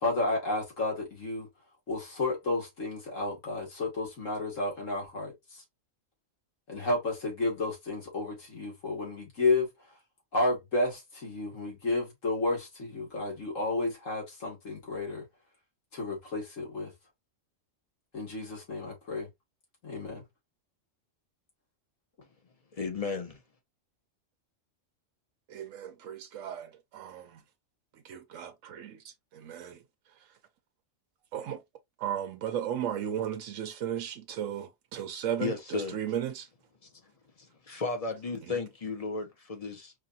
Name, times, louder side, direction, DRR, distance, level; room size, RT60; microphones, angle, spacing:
voice 1, 0.0-1.5 1.9-5.6 6.7-9.7 10.3-15.3 15.9-16.9 18.1-19.3 19.8-20.2, left 2 dB, 80° left, 2.4 m, -31 dB
voice 2, 22.7-23.4 35.4-36.0 36.8-36.9 37.4-39.9, left 4 dB, 30° left, 0.9 m, -34 dB
voice 3, 25.5-27.4 28.0-29.0 29.3-29.8 31.3-31.6 32.0-36.5, right 10 dB, 80° right, 1.0 m, -35 dB
4.9 x 2.6 x 2.7 m
omnidirectional pair, 1.3 m